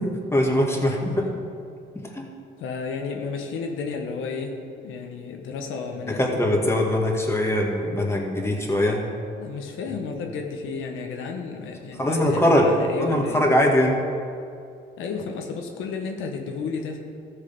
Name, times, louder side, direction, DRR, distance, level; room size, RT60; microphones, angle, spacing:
voice 1, 0.0-1.2 2.1-2.3 6.1-9.0 12.0-12.7 13.0-14.0, left 1 dB, 15° left, -1 dB, 2.0 m, -22 dB
voice 2, 0.7-1.4 2.6-6.4 9.4-13.5 15.0-17.0, left 5 dB, 85° left, 3 dB, 1.1 m, -32 dB
14.0 x 6.6 x 5.3 m, 2.5 s
cardioid pair, 90°, 20 cm